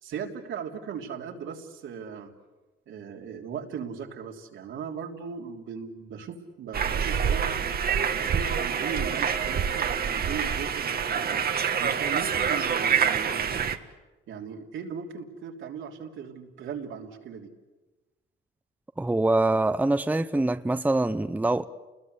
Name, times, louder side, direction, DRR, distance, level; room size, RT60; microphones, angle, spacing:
voice 1, 0.0-2.3 2.9-7.5 8.1-13.9 14.3-17.5, right 7 dB, 80° right, 3.3 m, -38 dB
sound 1, 6.7-13.8, right 7 dB, 50° right, 1.5 m, -26 dB
voice 2, 19.0-21.7, right 2 dB, 10° right, 0.8 m, -24 dB
29.5 x 21.0 x 8.3 m
cardioid pair, 90°, 20 cm